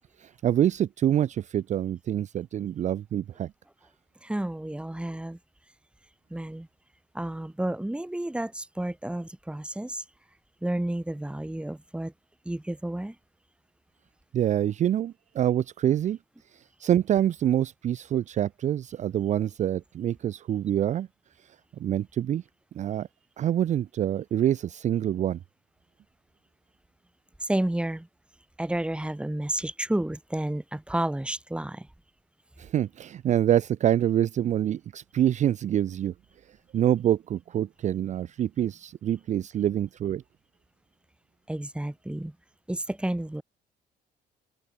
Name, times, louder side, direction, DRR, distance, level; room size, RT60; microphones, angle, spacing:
voice 1, 0.2-3.5 14.3-16.2 16.5-21.1 21.4-22.4 22.7-23.1 23.4-25.4 32.6-36.1 36.7-40.2, right 11 dB, 45° right, 0.5 m, -26 dB
voice 2, 4.2-5.4 6.3-6.7 7.1-10.0 10.6-12.1 12.5-13.2 27.4-28.1 28.6-31.9 41.5-42.4 42.7-43.4, right 1 dB, 5° right, 3.6 m, -31 dB
open air
cardioid pair, 110°, 17 cm